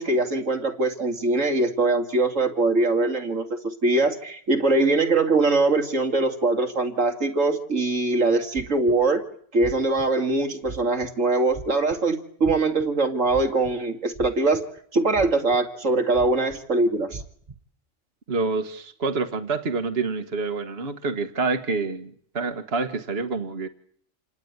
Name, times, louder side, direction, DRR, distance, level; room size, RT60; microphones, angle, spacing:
voice 1, 0.0-9.2 9.5-14.6 14.9-17.2, right 2 dB, 80° right, 4 dB, 3.0 m, -22 dB
sound 1, 8.6-9.0 9.6-10.0 10.6-11.1 11.5-11.9 12.4-12.8 13.3-13.7 14.1-14.8 15.1-15.6 16.1-16.6 17.1-17.5, right 4 dB, 30° right, 1.2 m, -38 dB
voice 2, 18.3-23.7, right 4 dB, 55° right, 7 dB, 1.8 m, -27 dB
28.0 x 18.5 x 9.6 m, 0.62 s
omnidirectional pair, 1.3 m